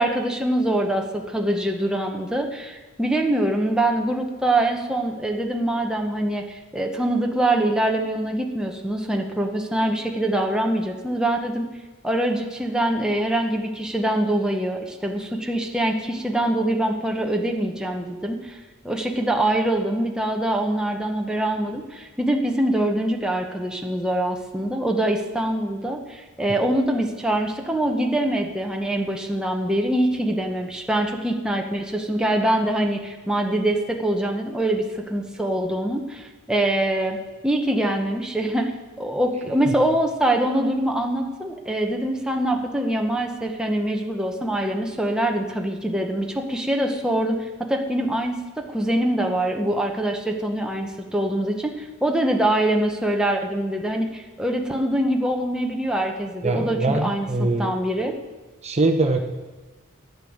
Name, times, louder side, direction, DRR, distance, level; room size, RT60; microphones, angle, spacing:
voice 1, 0.0-11.7 12.0-18.6 18.8-37.2 37.4-38.7 39.0-58.1, right 1 dB, 5° right, 1 dB, 0.9 m, -24 dB
voice 2, 56.4-57.7 58.6-59.2, right 2 dB, 30° right, 5 dB, 0.8 m, -22 dB
10.5 x 8.0 x 6.4 m, 1.2 s
head